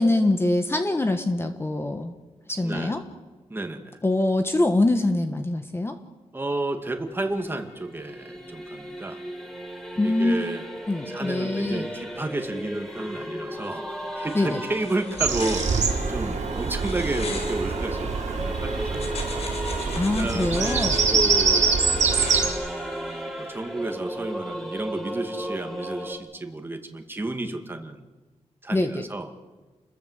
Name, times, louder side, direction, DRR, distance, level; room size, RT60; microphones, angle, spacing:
voice 1, 0.0-2.1 2.5-3.0 4.0-6.0 10.0-10.4 10.9-11.9 14.3-14.6 20.0-21.0 28.7-29.0, left 2 dB, 20° left, 7 dB, 1.4 m, -24 dB
voice 2, 2.6-3.0 3.5-4.0 6.3-9.2 10.0-10.6 11.1-13.8 14.2-19.2 20.2-21.7 22.4-28.1 28.6-29.3, right 2 dB, 20° right, 5 dB, 2.2 m, -32 dB
Singing / Musical instrument, 6.8-26.1, equal, 5° left, 3.9 m, -35 dB
sound 1, 14.3-18.4 18.9-21.0 21.9-23.2, left 3 dB, 60° left, 5.2 m, -39 dB
Bird vocalization bird call bird song, 15.2-22.5, right 5 dB, 80° right, 3.8 m, -25 dB
29.0 x 21.0 x 8.2 m, 1.3 s
wide cardioid pair, 155°, 12 cm